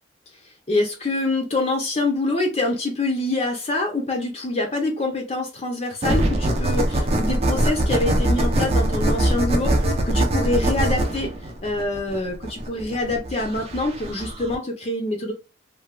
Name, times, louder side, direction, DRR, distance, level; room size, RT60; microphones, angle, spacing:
voice 1, 0.7-11.3 11.6-15.3, left 2 dB, 30° left, 2 dB, 0.5 m, -25 dB
sound 1, 6.0-14.5, right 1 dB, 30° right, 0.5 m, -22 dB
3.2 x 2.2 x 2.2 m, 0.29 s
head